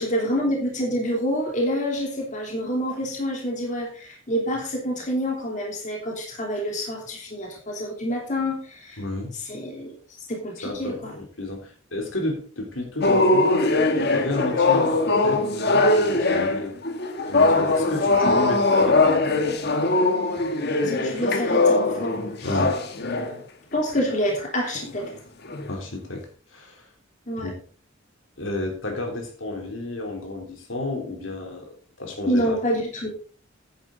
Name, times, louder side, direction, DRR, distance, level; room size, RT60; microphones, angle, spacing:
voice 1, 0.0-9.0 9.5-9.9 10.3-11.1 18.2-18.4 21.0-22.2 23.7-25.1 27.3-27.5 32.3-33.1, equal, 40° left, 0 dB, 3.0 m, -27 dB
voice 2, 9.0-9.3 10.6-13.7 14.1-16.7 17.3-19.4 22.4-22.8 25.7-26.9 27.4-27.6 28.4-32.6, left 2 dB, 80° left, 1 dB, 3.4 m, -31 dB
sound 1, 13.0-23.4 23.9-24.1 24.7-25.1 25.4-25.7, left 2 dB, 55° left, 1.5 m, -21 dB
10.5 x 9.7 x 3.8 m, 0.40 s
head